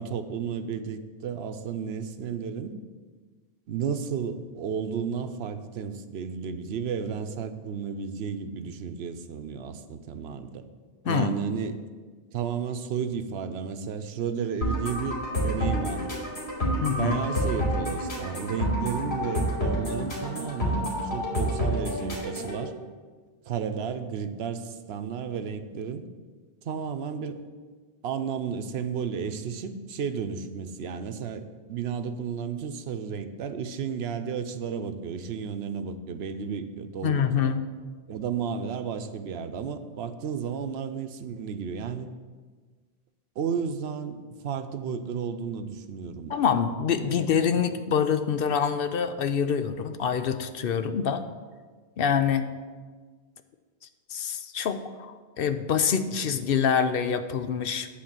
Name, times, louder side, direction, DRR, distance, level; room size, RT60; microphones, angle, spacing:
voice 1, 0.0-2.8 3.7-10.6 11.0-11.8 12.3-16.1 17.0-22.7 23.5-26.1 26.6-27.4 28.0-37.2 38.1-42.1 43.4-46.4 47.0-47.2 56.1-56.2, right 7 dB, 85° right, 9 dB, 0.9 m, -33 dB
sound 1, 14.6-22.6, equal, 90° left, 3.0 m, -29 dB
voice 2, 16.8-17.1 37.0-37.6 46.3-51.3 52.0-52.5 54.1-57.9, left 7 dB, 65° left, 9 dB, 0.8 m, -26 dB
10.5 x 4.2 x 7.4 m, 1.5 s
omnidirectional pair, 1.0 m